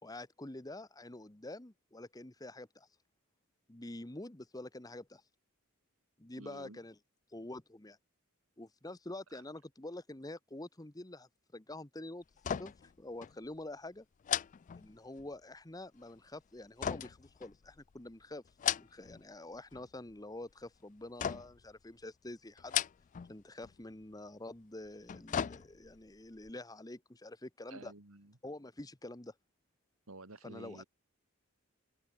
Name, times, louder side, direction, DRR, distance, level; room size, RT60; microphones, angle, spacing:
voice 1, 0.0-2.9 3.7-5.2 6.2-7.0 7.3-8.0 8.6-12.2 12.6-14.0 14.7-18.4 18.8-22.8 23.3-27.9 28.4-29.3 30.4-30.8, left 2 dB, 15° left, 1.2 m, -47 dB
voice 2, 6.4-6.8 9.3-9.4 27.7-28.3 30.1-30.8, right 2 dB, 75° right, 2.4 m, -51 dB
sound 1, 12.4-12.9 13.2-13.4 14.2-15.3 16.8-17.9 18.5-19.2 19.5-20.1 21.2-21.7 22.6-23.3 23.6-23.8 24.9-26.0 26.4-26.5, left 9 dB, 35° left, 0.3 m, -37 dB
head